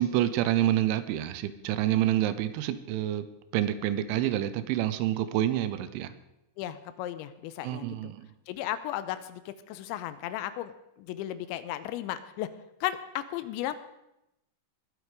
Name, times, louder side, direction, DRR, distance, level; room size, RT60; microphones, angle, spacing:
voice 1, 0.0-3.3 3.5-6.1 7.6-8.3, right 13 dB, 85° right, 13 dB, 3.1 m, -27 dB
voice 2, 6.6-8.1 8.5-12.5 12.8-13.8, left 13 dB, 80° left, 12 dB, 2.9 m, -35 dB
21.0 x 8.2 x 5.1 m, 0.88 s
omnidirectional pair, 5.5 m